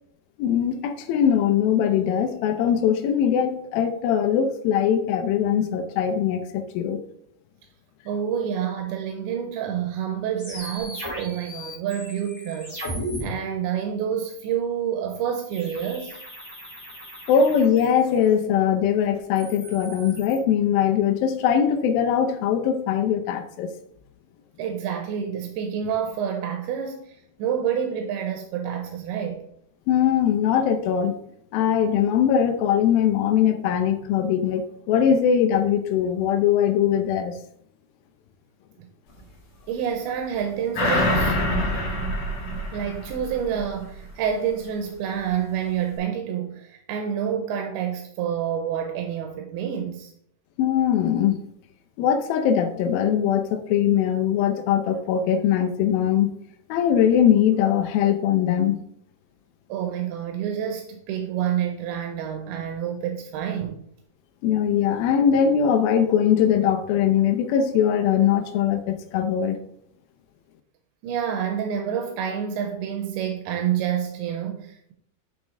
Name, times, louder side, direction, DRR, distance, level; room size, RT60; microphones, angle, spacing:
voice 1, 0.4-7.0 17.3-23.7 29.9-31.2 31.5-34.6 34.9-37.4 50.6-51.4 52.0-56.4 56.7-58.8 64.4-69.6, left 8 dB, 80° left, 8 dB, 2.3 m, -21 dB
voice 2, 8.1-12.8 13.2-16.2 24.6-29.4 38.8-38.9 39.7-41.4 42.7-50.1 59.7-63.8 71.0-74.9, right 8 dB, 85° right, 5 dB, 2.6 m, -28 dB
sound 1, 10.4-13.2 15.5-18.3 19.2-20.4, equal, 10° left, 1.5 m, -37 dB
sound 2, 40.7-43.7 44.0-44.1, left 1 dB, 55° left, 1.6 m, -25 dB
6.1 x 5.9 x 3.7 m, 0.69 s
omnidirectional pair, 4.5 m